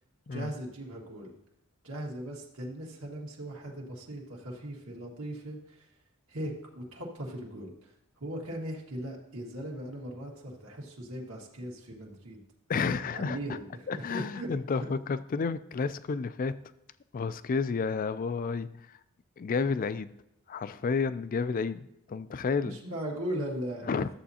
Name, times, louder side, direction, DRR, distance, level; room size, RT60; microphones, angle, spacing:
voice 1, 0.3-1.4 1.8-5.9 6.3-7.9 8.2-12.4 13.0-14.9 22.6-23.9, right 1 dB, 70° right, -2 dB, 1.8 m, -39 dB
voice 2, 12.7-13.4 13.9-16.6 17.1-19.0 19.4-20.1 20.5-22.8 23.8-24.1, left 5 dB, 40° left, 14 dB, 0.3 m, -31 dB
12.5 x 7.3 x 2.8 m, 0.83 s
head